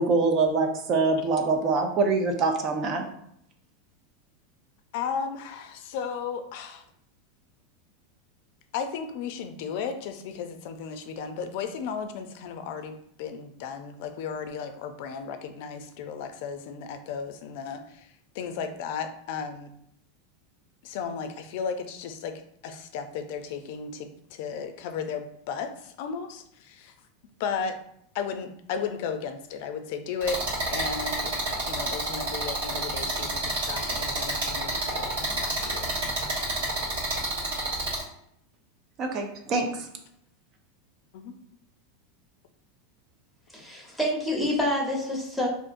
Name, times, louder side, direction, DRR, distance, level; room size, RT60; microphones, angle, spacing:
voice 1, 0.0-3.0 39.0-39.9, right 3 dB, 40° right, 4 dB, 0.6 m, -24 dB
voice 2, 4.9-6.9 8.7-19.7 20.8-26.9 27.4-27.8 28.1-30.4 30.7-31.3 31.7-36.2 41.1-41.3, left 6 dB, 65° left, 7 dB, 0.4 m, -35 dB
sound 1, 30.2-38.0, right 2 dB, 85° right, 1.2 m, -29 dB
voice 3, 43.5-45.5, left 1 dB, ahead, -3 dB, 1.0 m, -27 dB
3.6 x 2.5 x 2.5 m, 0.72 s
supercardioid pair, 120°, 0 cm